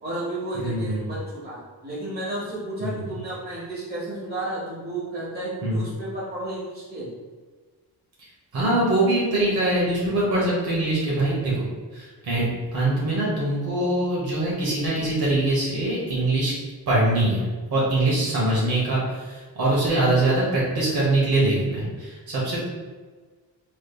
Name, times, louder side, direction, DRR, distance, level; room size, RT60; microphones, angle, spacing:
voice 1, 0.0-7.1, right 1 dB, 25° right, -8 dB, 1.3 m, -32 dB
voice 2, 0.6-1.1 2.8-3.1 5.6-5.8 8.5-11.7 11.9-12.5 12.7-16.5 16.9-22.6, right 2 dB, 65° right, -5 dB, 1.1 m, -23 dB
3.4 x 3.1 x 2.2 m, 1.4 s
wide cardioid pair, 135°, 40 cm